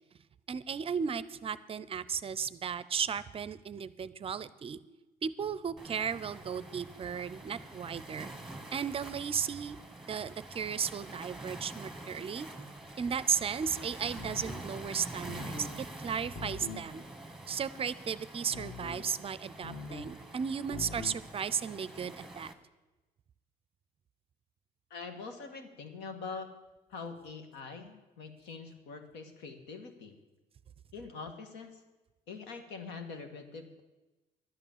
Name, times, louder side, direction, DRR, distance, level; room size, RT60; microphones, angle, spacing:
voice 1, 0.5-4.8 5.2-8.3 8.7-9.8 10.1-12.5 13.0-17.0 17.5-22.5, right 7 dB, 35° right, 17 dB, 0.5 m, -35 dB
Waves surf, 5.8-22.5, right 2 dB, ahead, 1.4 m, -47 dB
sound 1, 14.2-14.7 15.3-15.7 16.3-16.9 18.5-19.1 19.6-20.1 20.7-21.2, left 3 dB, 40° left, 1.8 m, -42 dB
voice 2, 24.9-26.5 26.9-30.2 30.9-31.8 32.3-33.8, left 4 dB, 90° left, 6 dB, 1.8 m, -44 dB
11.5 x 9.3 x 7.3 m, 1.1 s
cardioid pair, 110°, 17 cm